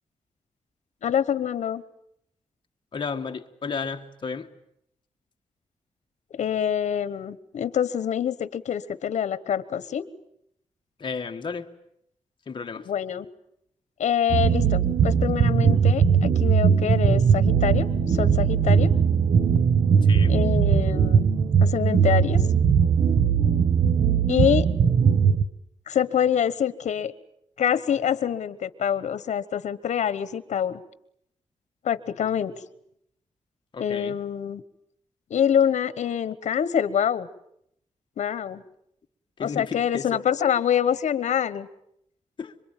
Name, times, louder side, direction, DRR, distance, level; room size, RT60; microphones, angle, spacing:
voice 1, 1.0-1.8 6.3-10.1 12.8-13.3 14.0-18.9 20.3-21.2 21.6-22.5 24.3-24.7 25.9-27.1 27.6-30.8 31.8-32.6 33.8-34.6 35.3-37.3 38.2-38.6 39.4-41.7, left 9 dB, 85° left, 1.2 m, -25 dB
voice 2, 2.9-4.5 11.0-11.7 12.5-12.9 20.0-20.3 33.7-34.2 39.4-40.2 42.4-42.5, left 5 dB, 40° left, 1.7 m, -33 dB
sound 1, 14.3-25.4, right 7 dB, 60° right, 1.3 m, -20 dB
26.5 x 24.0 x 9.1 m
wide cardioid pair, 145°, 12 cm